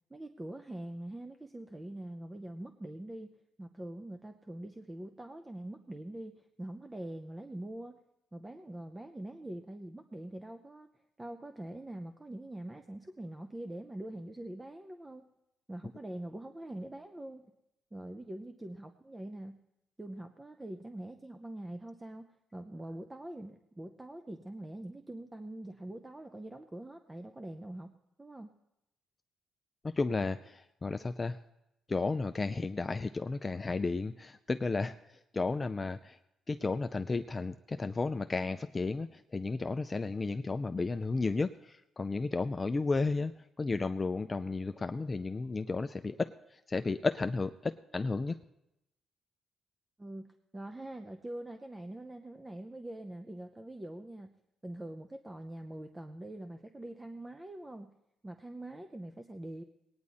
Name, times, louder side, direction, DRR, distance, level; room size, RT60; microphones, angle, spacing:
voice 1, 0.1-3.3 3.6-8.0 8.3-10.9 11.2-15.3 15.7-17.5 17.9-19.6 20.0-22.3 22.5-28.5 50.0-54.3 54.6-57.9 58.2-59.6, right 1 dB, 15° right, 7 dB, 0.7 m, -44 dB
voice 2, 29.8-31.4 31.9-35.0 35.3-36.2 36.5-43.3 43.6-48.4, left 3 dB, 25° left, 9 dB, 0.4 m, -33 dB
19.5 x 9.7 x 4.1 m, 0.87 s
cardioid pair, 90°, 0 cm